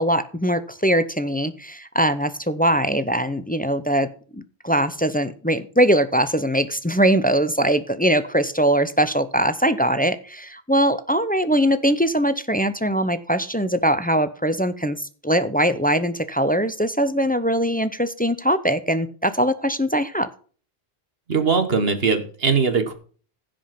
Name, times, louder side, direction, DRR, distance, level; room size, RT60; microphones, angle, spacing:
voice 1, 0.0-20.3, right 1 dB, 10° left, 12 dB, 0.5 m, -21 dB
voice 2, 21.3-22.9, right 5 dB, 65° right, 7 dB, 1.5 m, -20 dB
15.5 x 5.2 x 5.8 m, 0.41 s
omnidirectional pair, 1.1 m